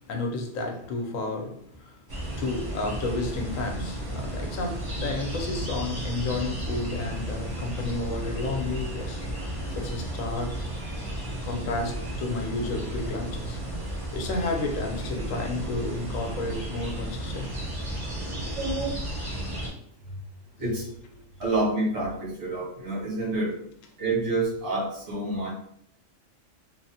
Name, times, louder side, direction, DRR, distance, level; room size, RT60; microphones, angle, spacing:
voice 1, 0.1-1.9 2.3-10.6 11.4-13.6 14.1-17.6, left 2 dB, 85° left, 3 dB, 1.0 m, -32 dB
Morning woods ambiance with birds, 2.1-19.7, right 1 dB, 25° right, 0.6 m, -33 dB
voice 2, 18.5-19.3 20.6-20.9 21.4-23.5 24.0-25.5, right 2 dB, 85° right, -5 dB, 1.6 m, -28 dB
3.1 x 2.0 x 2.7 m, 0.68 s
omnidirectional pair, 1.3 m